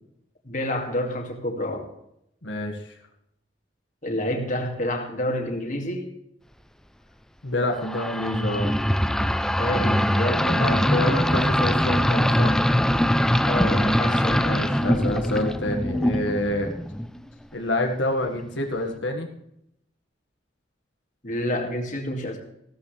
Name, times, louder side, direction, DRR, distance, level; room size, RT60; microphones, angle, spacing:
voice 1, 0.4-1.9 4.0-6.1 9.6-10.5 13.4-14.6 21.2-22.4, left 1 dB, 45° left, 2 dB, 2.4 m, -28 dB
voice 2, 2.4-2.8 7.4-8.7 10.5-12.5 14.4-16.7 17.5-19.3, left 1 dB, 90° left, 2 dB, 1.8 m, -27 dB
sound 1, 7.8-17.2, equal, 5° left, 0.5 m, -22 dB
16.0 x 13.0 x 3.3 m, 0.79 s
head